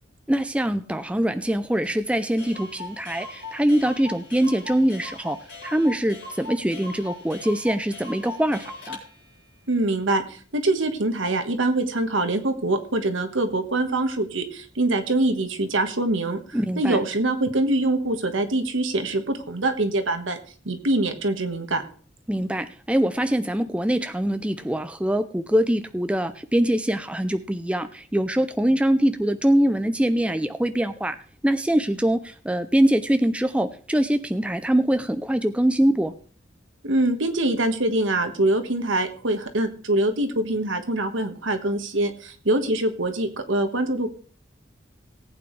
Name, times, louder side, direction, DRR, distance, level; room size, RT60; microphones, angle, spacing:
voice 1, 0.3-5.4 5.6-9.0 16.5-17.0 22.3-31.2 31.4-36.1, right 1 dB, 5° right, 9 dB, 0.4 m, -23 dB
Clock, 1.8-1.9 2.1-2.2 2.4-9.0, left 3 dB, 65° left, 4.5 m, -39 dB
voice 2, 9.7-20.4 20.6-21.8 36.8-44.1, right 2 dB, 85° right, 7 dB, 1.5 m, -24 dB
18.5 x 8.6 x 3.3 m, 0.43 s
head